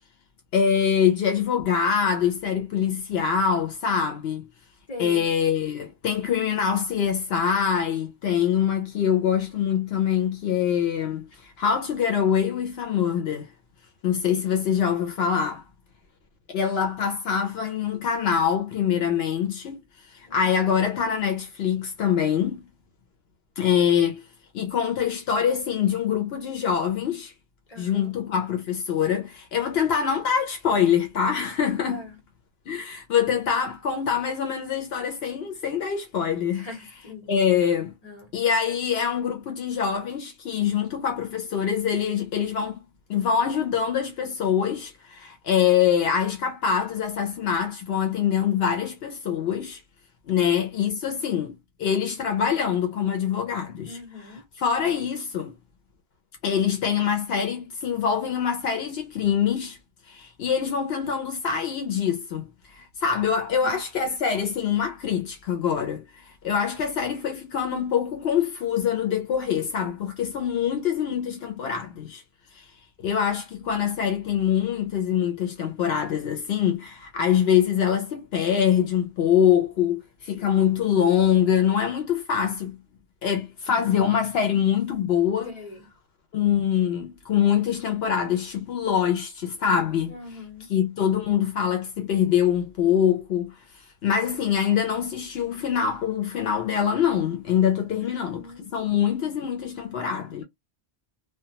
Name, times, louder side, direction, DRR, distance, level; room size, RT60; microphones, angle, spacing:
voice 1, 0.5-4.5 5.0-13.5 14.0-15.6 16.5-19.8 20.1-22.6 23.6-24.2 24.5-27.3 27.8-32.1 32.7-36.7 37.3-37.9 38.3-42.8 43.1-49.8 50.3-51.5 51.8-55.5 56.4-59.8 60.1-72.2 72.6-72.7 73.0-82.8 83.2-85.6 86.3-93.6 94.0-100.4, left 8 dB, 75° left, 0.9 m, -24 dB
voice 2, 4.9-5.3 20.3-20.5 27.7-28.1 31.9-32.1 36.5-37.3 38.0-38.3 53.8-54.4 63.6-63.8 81.5-81.7 85.4-85.8 90.1-90.7 98.3-98.7, left 3 dB, 40° left, 1.1 m, -41 dB
2.3 x 2.2 x 2.8 m
omnidirectional pair, 1.1 m